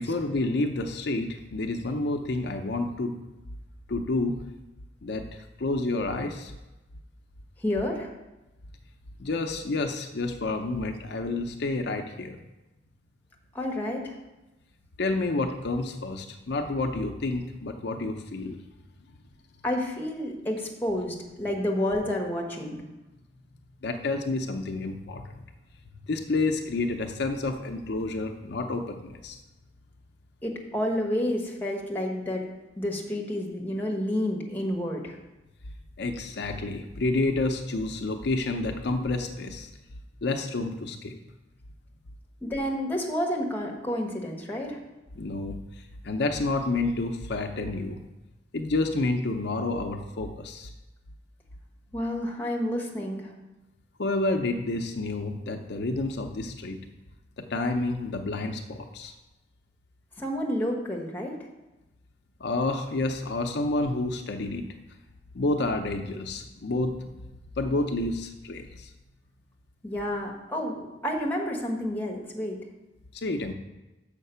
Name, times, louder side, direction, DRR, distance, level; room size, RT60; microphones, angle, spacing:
voice 1, 0.0-3.1 3.9-4.3 5.0-5.3 5.6-6.5 9.2-12.4 15.0-18.6 23.8-25.3 26.1-29.4 36.0-39.7 40.2-41.2 45.2-45.6 46.0-48.0 48.5-50.7 54.0-56.8 57.4-59.1 62.4-64.6 65.3-67.1 67.6-68.9 73.1-73.5, left 2 dB, 65° left, 5 dB, 0.6 m, -29 dB
voice 2, 7.6-8.1 13.5-14.1 19.6-22.8 30.4-32.4 32.8-35.2 42.4-44.8 51.9-53.3 60.2-61.4 69.8-72.6, left 1 dB, 10° left, 0 dB, 1.2 m, -30 dB
6.5 x 5.2 x 6.7 m, 1.0 s
head